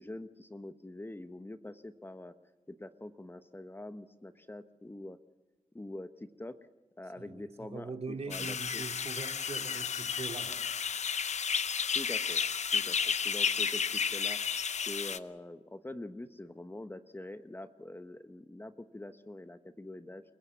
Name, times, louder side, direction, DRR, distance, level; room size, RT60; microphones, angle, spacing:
voice 1, 0.0-2.3 2.7-5.2 5.7-6.5 7.0-8.8 11.9-12.4 12.7-14.4 14.9-20.2, left 1 dB, 15° left, 1.0 m, -44 dB
voice 2, 7.2-10.7, right 4 dB, 55° right, 2.6 m, -42 dB
sound 1, 8.3-15.2, left 6 dB, 60° left, 0.8 m, -32 dB
29.0 x 16.0 x 7.0 m
cardioid pair, 55°, 13 cm